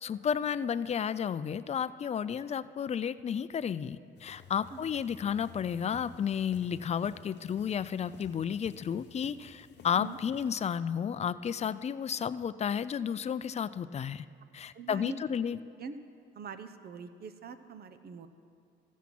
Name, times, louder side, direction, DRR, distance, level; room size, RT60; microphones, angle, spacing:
voice 1, 0.0-14.2 14.5-15.6, left 8 dB, 35° left, 15 dB, 0.4 m, -32 dB
sound 1, 4.2-10.5, left 6 dB, 60° left, 0.9 m, -54 dB
voice 2, 14.7-15.2 15.8-15.9 16.3-18.3, right 6 dB, 50° right, 11 dB, 0.7 m, -43 dB
14.5 x 7.3 x 6.0 m, 2.4 s
cardioid pair, 90°, 20 cm